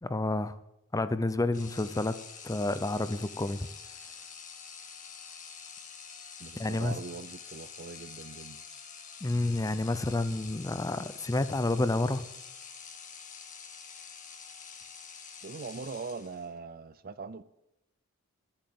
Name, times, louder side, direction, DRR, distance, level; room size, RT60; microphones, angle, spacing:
voice 1, 0.0-0.6 0.9-2.2 2.4-3.7 6.6-6.9 9.2-12.2, left 2 dB, 15° left, 0.5 m, -29 dB
sound 1, 1.5-16.6, left 6 dB, 35° left, 1.5 m, -47 dB
voice 2, 6.4-8.6 15.4-17.4, right 4 dB, 40° right, 0.5 m, -41 dB
11.5 x 8.8 x 7.6 m
head